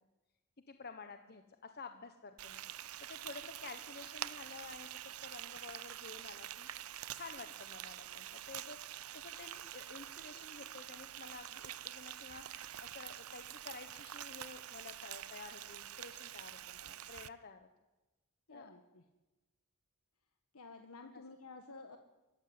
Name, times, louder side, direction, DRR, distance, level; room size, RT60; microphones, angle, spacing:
voice 1, 0.7-6.7 7.1-17.7 18.5-18.7 21.1-21.2, left 4 dB, 45° left, 7 dB, 1.2 m, -51 dB
Frying (food), 2.4-17.3, right 12 dB, 80° right, 0.7 m, -47 dB
voice 2, 18.5-19.0 20.5-22.0, left 3 dB, 80° left, 6 dB, 1.5 m, -52 dB
25.0 x 14.5 x 9.7 m, 1.1 s
head